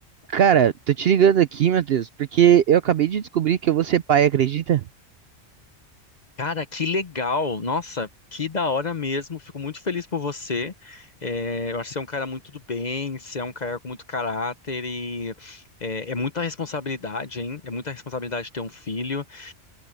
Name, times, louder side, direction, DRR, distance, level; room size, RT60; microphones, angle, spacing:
voice 1, 0.3-4.8, right 9 dB, 65° right, 0.8 m, -19 dB
voice 2, 6.4-19.5, left 4 dB, 40° left, 0.9 m, -29 dB
omnidirectional pair, 1.2 m